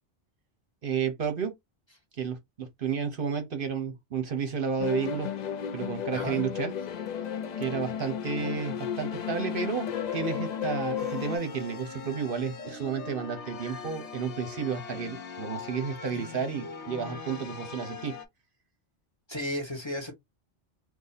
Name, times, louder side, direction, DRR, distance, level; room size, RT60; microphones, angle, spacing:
voice 1, 0.8-1.5 2.2-5.3 5.7-6.7 7.6-9.9 10.1-18.1, right 6 dB, 55° right, 0.9 m, -32 dB
sound 1, 4.8-11.4, left 8 dB, 60° left, 0.5 m, -33 dB
voice 2, 6.1-6.4 19.3-20.1, left 1 dB, 25° left, 0.9 m, -33 dB
sound 2, 11.0-18.3, left 5 dB, 75° left, 1.2 m, -41 dB
2.7 x 2.6 x 3.9 m
omnidirectional pair, 1.2 m